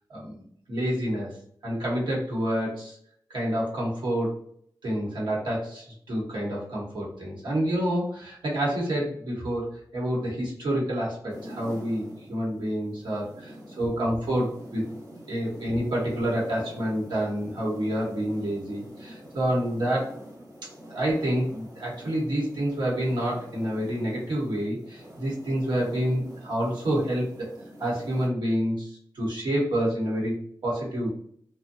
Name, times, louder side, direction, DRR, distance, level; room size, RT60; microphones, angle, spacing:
voice 1, 0.1-0.4 0.7-1.3 1.6-3.0 3.3-4.3 4.8-14.8 15.3-20.2 20.9-27.5 27.8-30.3 30.6-31.1, right 1 dB, 90° right, -4 dB, 1.0 m, -28 dB
sound 1, 11.3-28.3, equal, 50° right, 0.9 m, -45 dB
2.5 x 2.2 x 2.6 m, 0.65 s
cardioid pair, 50°, 8 cm